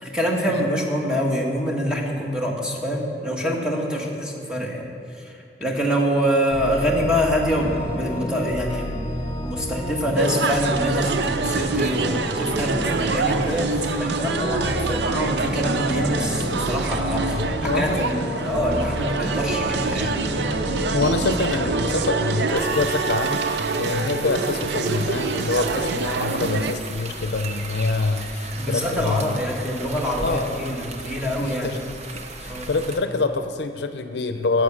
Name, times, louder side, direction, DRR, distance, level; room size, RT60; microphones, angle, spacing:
voice 1, 0.0-4.9 5.1-5.3 5.6-9.1 9.4-20.2 23.8-23.9 25.8-25.9 28.5-31.8 32.5-32.8, equal, 5° right, -1 dB, 1.3 m, -25 dB
sound 1, 6.5-22.5, equal, 25° left, 1.2 m, -31 dB
sound 2, 10.1-26.7, right 4 dB, 75° right, 0.5 m, -26 dB
voice 2, 17.2-18.0 20.9-29.4 30.2-30.7 31.4-31.8 32.4-34.6, left 3 dB, 80° left, 8 dB, 0.6 m, -26 dB
sound 3, 22.6-33.0, right 3 dB, 40° right, 0.8 m, -36 dB
11.5 x 7.9 x 6.2 m, 2.4 s
head